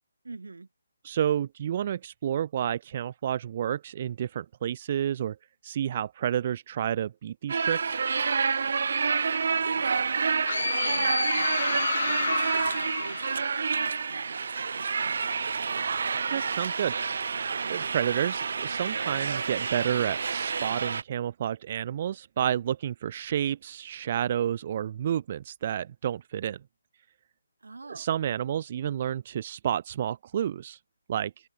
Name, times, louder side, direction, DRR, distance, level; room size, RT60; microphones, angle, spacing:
voice 1, 0.2-0.7 9.6-15.6 27.6-28.1, right 3 dB, 75° right, 5.0 m, -43 dB
voice 2, 1.0-5.4 5.6-8.0 16.3-26.6 27.9-30.8 31.1-31.3, right 10 dB, 40° right, 2.6 m, -30 dB
sound 1, 7.5-21.0, right 5 dB, 60° right, 2.4 m, -29 dB
sound 2, 10.4-14.1, left 5 dB, 60° left, 1.3 m, -31 dB
open air
figure-of-eight pair, 150°, 0 cm